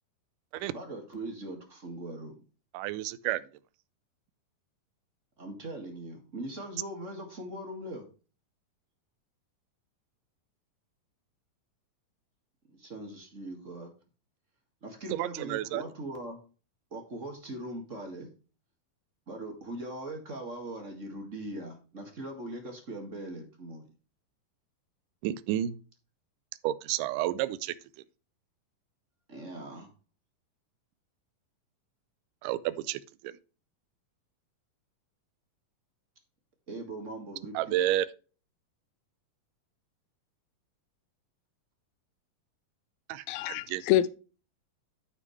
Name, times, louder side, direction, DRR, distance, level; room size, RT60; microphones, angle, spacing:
voice 1, 0.7-2.4 5.4-8.0 12.7-13.9 14.8-16.4 16.9-18.3 19.3-23.9 29.3-29.9 36.7-37.8, right 1 dB, 30° right, 1.4 m, -40 dB
voice 2, 2.7-3.4 15.1-15.8 25.2-25.8 26.6-27.8 32.4-33.4 37.5-38.1 43.1-43.8, right 13 dB, 80° right, 2.0 m, -31 dB
voice 3, 43.3-44.1, left 13 dB, 85° left, 2.3 m, -26 dB
9.8 x 7.2 x 3.2 m
omnidirectional pair, 4.2 m